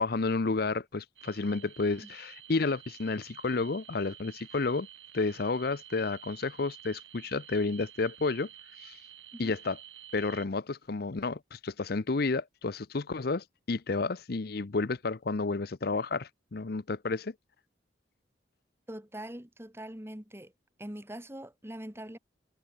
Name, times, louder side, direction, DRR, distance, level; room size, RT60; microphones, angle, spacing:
voice 1, 0.0-4.9 5.1-8.5 8.8-9.0 9.4-9.8 10.1-17.3, left 3 dB, 55° left, 0.7 m, -31 dB
sound 1, 1.2-10.5, right 11 dB, 80° right, 4.3 m, -51 dB
voice 2, 18.9-20.5 20.8-22.2, right 1 dB, 15° right, 2.0 m, -43 dB
head